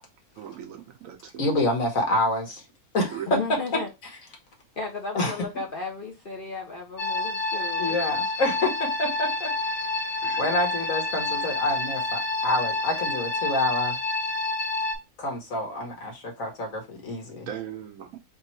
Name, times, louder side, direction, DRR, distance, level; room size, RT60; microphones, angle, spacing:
voice 1, 0.4-1.5 3.1-3.3 10.2-10.4 17.5-18.2, right 10 dB, 70° right, 1.0 m, -38 dB
voice 2, 1.4-2.6 2.9-3.2 5.2-5.4 7.8-9.5 9.8-9.9 10.4-14.0 15.2-17.5, left 1 dB, 60° left, 1.7 m, -27 dB
voice 3, 3.3-3.9 4.8-8.0, left 4 dB, 45° left, 0.8 m, -34 dB
sound 1, 7.0-14.9, left 2 dB, 85° left, 1.8 m, -28 dB
3.4 x 3.0 x 4.4 m
omnidirectional pair, 1.6 m